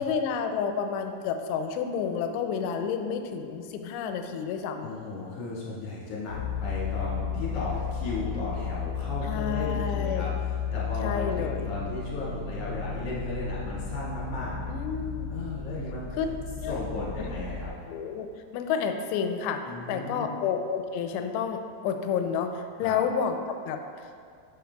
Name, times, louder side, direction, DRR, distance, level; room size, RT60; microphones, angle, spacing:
voice 1, 0.0-4.9 9.2-10.3 11.0-11.7 14.7-15.3 16.2-16.3 16.6-16.8 17.2-17.3 17.9-18.3 18.5-19.6 19.9-24.1, left 6 dB, 90° left, 6 dB, 2.7 m, -30 dB
voice 2, 4.8-10.3 10.7-14.5 15.3-16.1 16.7-17.7 19.6-20.4 22.8-23.0, left 3 dB, 50° left, -8 dB, 2.2 m, -35 dB
sound 1, 6.3-17.7, left 6 dB, 85° right, 0.9 m, -33 dB
10.0 x 5.9 x 2.3 m, 2.3 s
omnidirectional pair, 4.8 m